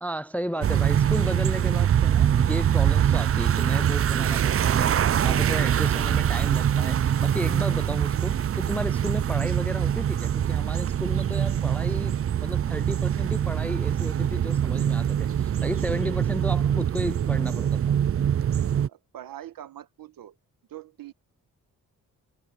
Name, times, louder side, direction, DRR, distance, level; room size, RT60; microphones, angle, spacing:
voice 1, 0.0-17.8, equal, 5° left, 0.4 m, -34 dB
sound 1, 0.6-18.9, right 9 dB, 40° right, 0.5 m, -24 dB
voice 2, 18.9-20.4 20.7-21.1, right 12 dB, 80° right, 1.6 m, -43 dB
cardioid pair, 105°, 33 cm